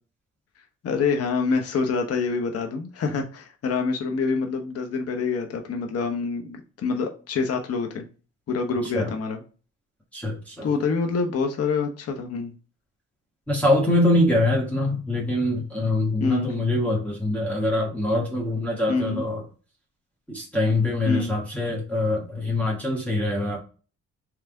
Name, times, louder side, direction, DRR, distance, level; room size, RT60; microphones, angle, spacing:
voice 1, 0.8-8.0 8.5-9.4 10.6-12.5 16.2-16.5 18.9-19.2 21.1-21.3, left 4 dB, 55° left, 4 dB, 0.8 m, -26 dB
voice 2, 10.1-10.7 13.5-19.4 20.3-23.6, left 1 dB, 5° left, -4 dB, 1.3 m, -24 dB
3.4 x 3.2 x 3.5 m, 0.36 s
cardioid pair, 90°, 30 cm